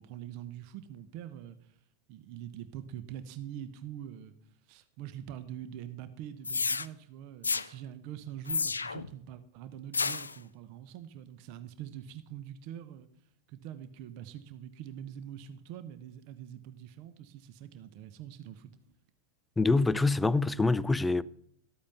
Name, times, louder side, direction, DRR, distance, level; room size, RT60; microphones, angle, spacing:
voice 1, 0.0-1.6 2.1-4.3 4.7-13.1 13.5-18.9, right 10 dB, 45° right, 0.9 m, -44 dB
sound 1, 6.4-6.9 7.4-7.7 8.5-9.1 9.9-10.3, left 4 dB, 75° left, 0.4 m, -30 dB
voice 2, 19.6-21.2, left 3 dB, 10° left, 0.4 m, -25 dB
13.5 x 8.6 x 5.6 m
figure-of-eight pair, 90°, 0 cm